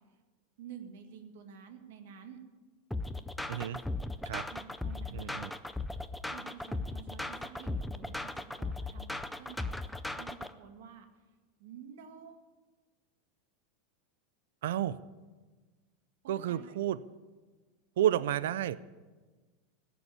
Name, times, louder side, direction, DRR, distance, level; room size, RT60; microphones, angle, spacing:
voice 1, 0.6-2.4 4.5-5.5 6.3-11.1 11.6-12.4 16.2-16.8, right 7 dB, 65° right, 6 dB, 1.8 m, -50 dB
sound 1, 2.9-10.5, left 2 dB, 5° left, 0.4 m, -37 dB
voice 2, 3.5-3.8 4.2-4.5 5.1-5.5 14.6-15.0 16.3-17.0 18.0-18.8, right 11 dB, 85° right, 17 dB, 0.5 m, -31 dB
16.5 x 7.0 x 9.9 m, 1.3 s
supercardioid pair, 175°, 0 cm